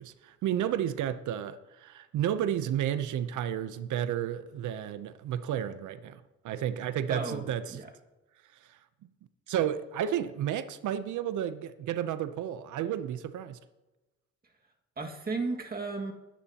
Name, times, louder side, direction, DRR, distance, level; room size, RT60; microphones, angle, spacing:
voice 1, 0.0-6.2 6.4-7.8 9.5-13.6, right 10 dB, 75° right, 0.7 m, -32 dB
voice 2, 7.1-7.9 15.0-16.1, right 3 dB, 30° right, 2.0 m, -34 dB
21.0 x 10.0 x 2.9 m
cardioid pair, 90°, 30 cm